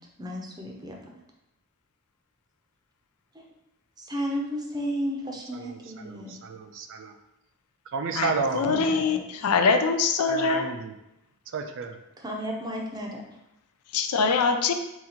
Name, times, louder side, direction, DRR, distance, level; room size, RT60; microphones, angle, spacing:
voice 1, 0.2-1.0 3.3-3.5 4.0-6.4 8.6-9.6 12.2-13.2, equal, 20° right, 0 dB, 0.6 m, -33 dB
voice 2, 5.5-7.1 7.9-8.7 10.3-10.9 11.5-12.0, right 4 dB, 60° right, 6 dB, 0.4 m, -32 dB
voice 3, 8.1-10.7 13.9-14.7, left 4 dB, 75° left, 7 dB, 0.4 m, -23 dB
4.0 x 2.5 x 4.3 m, 0.89 s
head